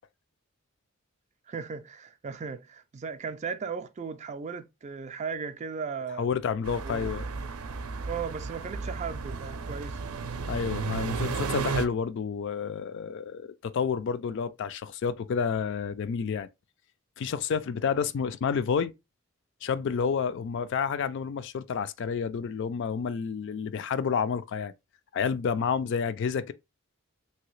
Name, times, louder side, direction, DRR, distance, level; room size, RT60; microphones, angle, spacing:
voice 1, 1.5-6.3 6.8-7.1 8.1-10.0, right 5 dB, 35° right, 0.3 m, -36 dB
voice 2, 6.2-7.2 10.5-16.5 17.2-18.9 19.6-24.7 25.1-26.5, left 6 dB, 55° left, 0.3 m, -29 dB
sound 1, 6.6-11.9, right 4 dB, 90° right, 0.5 m, -33 dB
3.0 x 2.8 x 3.1 m
head